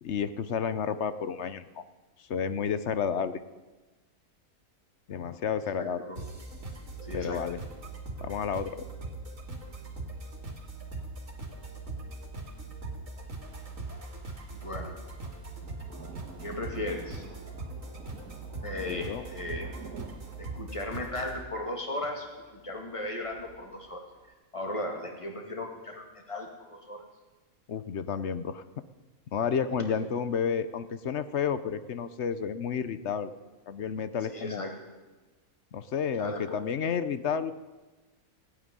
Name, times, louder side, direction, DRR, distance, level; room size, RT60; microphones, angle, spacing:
voice 1, 0.0-1.8 2.2-3.4 5.1-6.0 7.1-7.6 8.2-8.8 18.9-19.2 27.7-28.6 29.3-33.3 33.7-34.7 35.7-37.5, left 7 dB, 55° left, 12 dB, 0.9 m, -31 dB
voice 2, 5.7-6.2 7.0-7.4 14.5-14.9 16.4-17.2 18.6-19.8 20.4-24.0 24.5-27.0 29.8-29.9 34.3-34.7 36.2-36.6, left 1 dB, 20° left, 2 dB, 2.4 m, -36 dB
sound 1, 6.2-21.4, right 2 dB, 65° right, 2.7 m, -41 dB
Thunder, 13.1-24.3, right 6 dB, 85° right, 1.8 m, -51 dB
16.5 x 9.1 x 9.7 m, 1.2 s
omnidirectional pair, 1.5 m